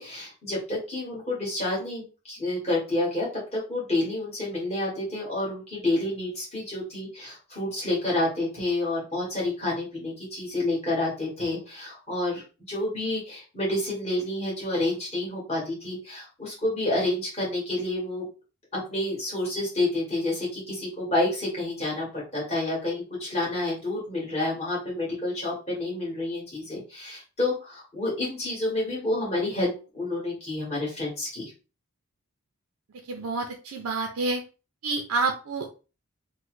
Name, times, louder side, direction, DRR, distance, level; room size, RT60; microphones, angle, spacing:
voice 1, 0.0-18.3 18.7-31.5, left 2 dB, 30° left, -5 dB, 1.6 m, -29 dB
voice 2, 33.1-34.4 34.8-35.7, right 3 dB, 85° right, 3 dB, 0.5 m, -28 dB
3.1 x 2.1 x 3.0 m, 0.33 s
head